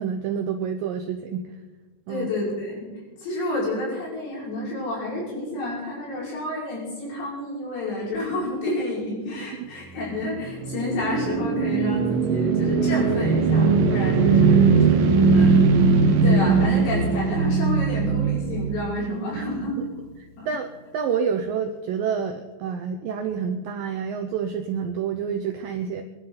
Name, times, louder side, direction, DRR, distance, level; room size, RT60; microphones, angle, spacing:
voice 1, 0.0-1.5 2.1-2.3 9.6-9.7 19.4-19.5 20.2-26.0, right 7 dB, 85° right, 5 dB, 2.0 m, -28 dB
voice 2, 2.1-2.9 3.2-14.6 15.0-15.8 16.0-19.8 20.4-20.5, left 1 dB, 70° left, -4 dB, 7.6 m, -29 dB
sound 1, 10.1-19.4, right 4 dB, 65° right, 2.5 m, -20 dB
23.5 x 11.5 x 4.0 m, 1.3 s
omnidirectional pair, 5.1 m